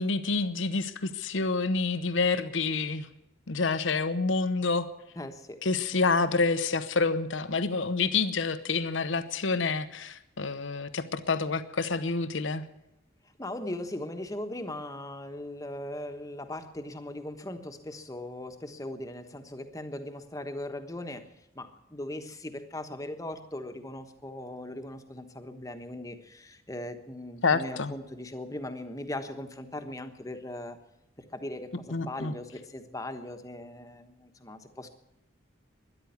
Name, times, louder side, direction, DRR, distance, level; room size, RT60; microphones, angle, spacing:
voice 1, 0.0-3.1 3.5-4.9 5.6-12.6 27.4-27.9 31.9-32.3, left 4 dB, 80° left, 11 dB, 0.9 m, -28 dB
voice 2, 5.2-5.6 13.4-30.8 31.3-34.9, left 1 dB, 15° left, 7 dB, 1.2 m, -39 dB
13.0 x 11.0 x 9.4 m, 0.89 s
head